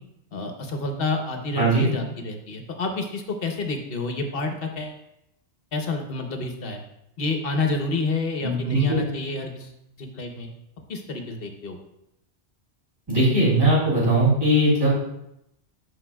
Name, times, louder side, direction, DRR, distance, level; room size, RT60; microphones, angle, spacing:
voice 1, 0.3-5.0 5.7-6.8 7.2-9.7 10.0-10.5 10.9-11.8, left 2 dB, 60° left, 4 dB, 1.0 m, -29 dB
voice 2, 1.6-1.9 8.4-8.8 13.1-14.9, right 1 dB, 20° right, -7 dB, 2.5 m, -19 dB
12.0 x 4.7 x 2.2 m, 0.82 s
omnidirectional pair, 1.1 m